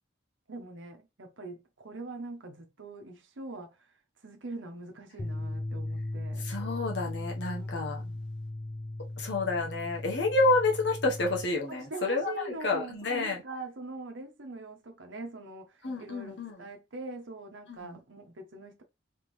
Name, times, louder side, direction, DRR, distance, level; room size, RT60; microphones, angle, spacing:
voice 1, 0.5-3.8 4.2-6.5 7.5-8.2 11.7-18.8, right 2 dB, 80° right, 1.0 m, -43 dB
sound 1, 5.2-11.4, left 1 dB, 35° left, 0.6 m, -37 dB
voice 2, 6.4-8.0 9.2-13.4 15.8-16.6 17.7-18.0, left 3 dB, 65° left, 1.1 m, -29 dB
3.6 x 3.2 x 3.1 m
head